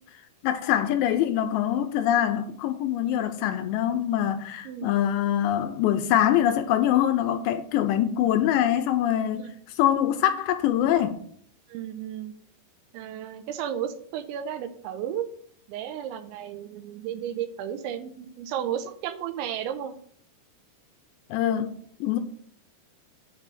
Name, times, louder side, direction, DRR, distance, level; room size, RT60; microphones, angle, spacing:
voice 1, 0.4-9.4 9.8-11.2 21.3-21.7 22.0-22.2, left 11 dB, 80° left, 2.7 m, -24 dB
voice 2, 11.7-12.3 12.9-15.3 15.7-19.9, right 9 dB, 85° right, 3.1 m, -33 dB
9.9 x 4.0 x 7.4 m
omnidirectional pair, 5.4 m